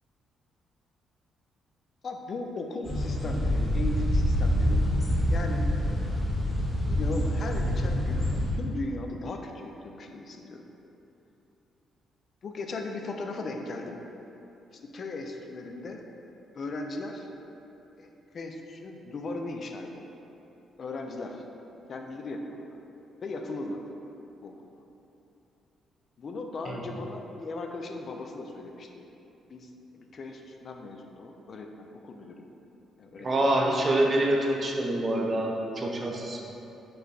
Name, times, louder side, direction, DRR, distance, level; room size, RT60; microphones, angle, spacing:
voice 1, 2.0-4.9 5.3-5.7 6.9-8.3 8.5-10.6 12.4-14.0 14.7-16.0 16.5-17.3 18.0-20.1 20.8-21.4 21.9-22.7 23.2-23.8 24.4-24.7 26.2-29.1 29.5-32.5 33.0-33.6, left 2 dB, 50° left, 3 dB, 0.4 m, -37 dB
sound 1, 2.8-8.5, equal, 15° left, 1.1 m, -26 dB
voice 2, 33.2-36.4, right 1 dB, 40° right, 0 dB, 0.6 m, -26 dB
5.4 x 2.2 x 3.9 m, 2.9 s
cardioid pair, 90°, 0 cm